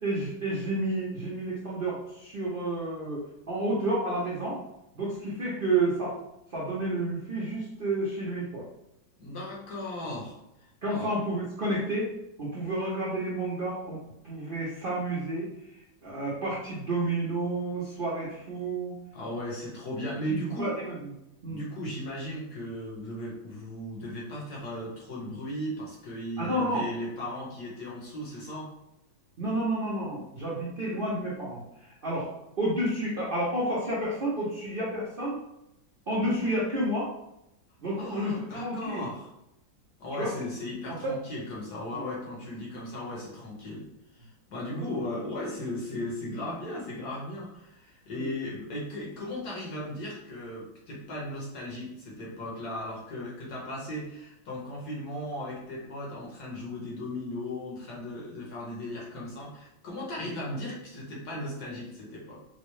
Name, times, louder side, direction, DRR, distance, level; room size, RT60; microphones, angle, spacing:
voice 1, 0.0-4.6 4.9-6.2 6.5-8.6 10.8-12.1 12.4-14.0 14.2-15.5 16.0-18.9 20.3-21.1 21.4-21.7 26.4-26.8 29.4-32.3 32.6-35.4 36.1-37.1 37.8-39.1 40.1-40.3 41.0-41.1 41.9-42.1 44.7-44.8 48.1-48.3 60.2-60.3, right 1 dB, 75° right, -7 dB, 0.5 m, -30 dB
voice 2, 9.2-10.4 10.9-11.1 19.1-20.7 21.5-28.7 38.0-39.3 40.0-43.9 44.1-62.4, left 1 dB, 60° left, -3 dB, 1.4 m, -37 dB
4.4 x 2.0 x 3.1 m, 0.86 s
omnidirectional pair, 2.1 m